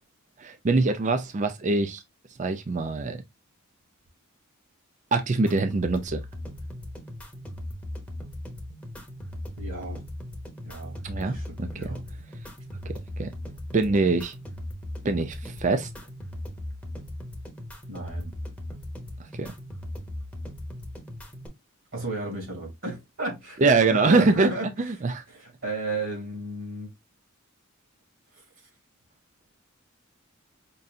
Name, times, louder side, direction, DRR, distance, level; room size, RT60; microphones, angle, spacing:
voice 1, 0.4-2.0 2.4-3.2 5.1-6.2 11.0-12.0 13.2-13.3 13.7-14.3 15.0-15.9 19.4-19.5 23.6-24.5 24.9-25.2, right 3 dB, 35° right, 0.4 m, -23 dB
sound 1, 5.5-21.5, left 1 dB, 5° left, 0.9 m, -38 dB
voice 2, 9.6-10.0 10.6-12.0 17.9-18.3 21.9-24.7 25.3-26.9 28.3-28.4, right 2 dB, 65° right, 2.7 m, -33 dB
5.4 x 2.7 x 2.4 m
head